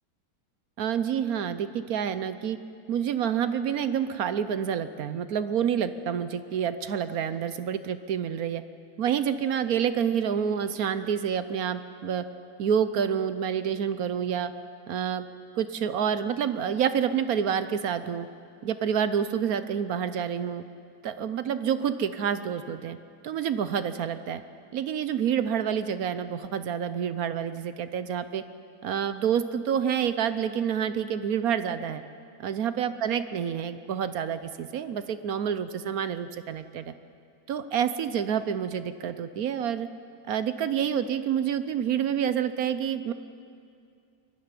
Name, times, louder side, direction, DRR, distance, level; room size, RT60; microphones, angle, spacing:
voice 1, 0.8-2.6 2.9-8.6 9.0-12.3 12.6-14.5 14.9-15.3 15.6-18.3 18.6-20.6 21.0-23.0 23.2-24.4 24.7-28.4 28.8-32.0 32.4-36.9 37.5-39.9 40.3-43.1, right 8 dB, 65° right, 12 dB, 1.2 m, -28 dB
22.0 x 13.0 x 9.8 m, 2.4 s
omnidirectional pair, 1.8 m